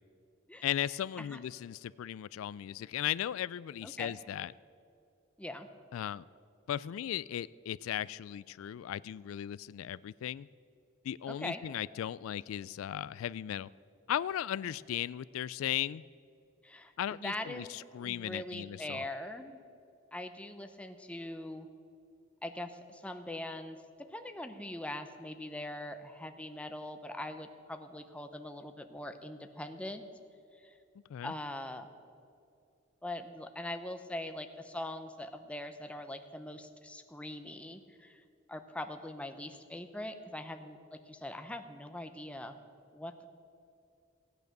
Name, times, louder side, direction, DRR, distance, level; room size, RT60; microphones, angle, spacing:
voice 1, 0.6-4.5 5.9-6.2 6.7-10.5 11.0-13.7 14.1-16.0 17.0-19.0 31.1-31.3, left 11 dB, 90° left, 19 dB, 0.3 m, -36 dB
voice 2, 3.8-4.1 5.4-5.7 11.3-11.6 16.6-19.6 20.1-21.7 22.4-23.8 24.1-30.0 30.5-30.7 31.2-31.9 33.0-42.6 42.9-43.2, left 1 dB, 5° left, 7 dB, 0.7 m, -42 dB
16.5 x 9.2 x 6.6 m, 2.5 s
head